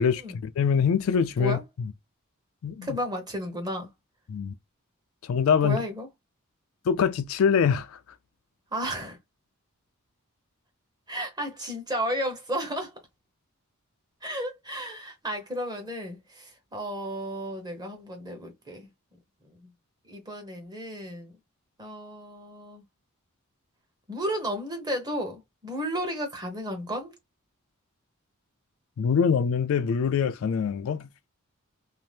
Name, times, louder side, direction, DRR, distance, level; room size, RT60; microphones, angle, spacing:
voice 1, 0.0-1.9 2.6-2.9 4.3-4.5 5.2-5.8 6.9-8.0 29.0-31.1, left 6 dB, 65° left, 0.3 m, -24 dB
voice 2, 2.8-3.9 5.6-6.1 8.7-9.2 11.1-12.9 14.2-18.9 19.6-19.7 20.1-21.3 21.8-22.8 24.1-27.1, equal, 20° right, 0.8 m, -33 dB
2.7 x 2.0 x 3.2 m
head